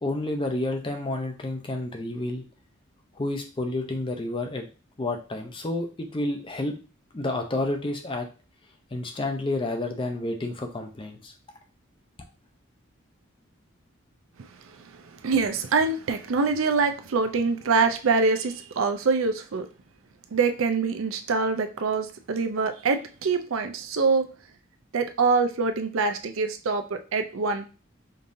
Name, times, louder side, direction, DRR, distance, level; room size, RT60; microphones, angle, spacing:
voice 1, 0.0-2.4 3.2-4.6 5.0-6.7 7.1-8.3 8.9-11.3, left 2 dB, 25° left, 4 dB, 0.5 m, -30 dB
voice 2, 14.8-19.7 20.3-24.3 24.9-27.7, right 4 dB, 80° right, 7 dB, 0.5 m, -25 dB
5.2 x 2.7 x 2.6 m, 0.34 s
head